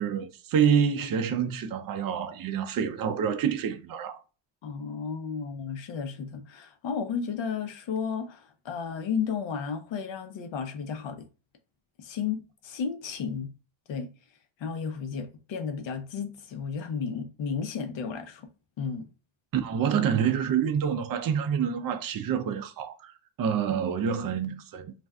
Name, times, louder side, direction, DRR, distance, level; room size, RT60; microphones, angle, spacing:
voice 1, 0.0-4.2 19.5-24.9, right 7 dB, 45° right, 0.5 m, -27 dB
voice 2, 4.6-11.3 12.0-13.5 13.9-14.1 14.6-18.5 18.8-19.1, left 6 dB, 70° left, 0.8 m, -33 dB
2.5 x 2.2 x 3.5 m
cardioid pair, 120°, 48 cm